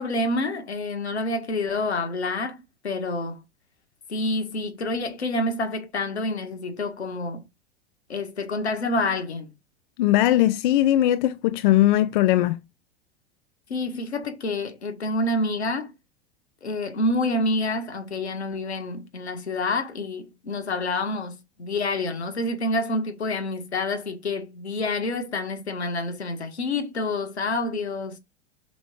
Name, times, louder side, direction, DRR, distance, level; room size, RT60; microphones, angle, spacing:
voice 1, 0.0-3.4 4.1-7.4 8.1-9.5 13.7-15.9 16.6-28.2, left 2 dB, 75° left, 1.8 m, -28 dB
voice 2, 10.0-12.6, left 14 dB, 50° left, 0.5 m, -19 dB
6.0 x 4.9 x 4.5 m
figure-of-eight pair, 90°, 33 cm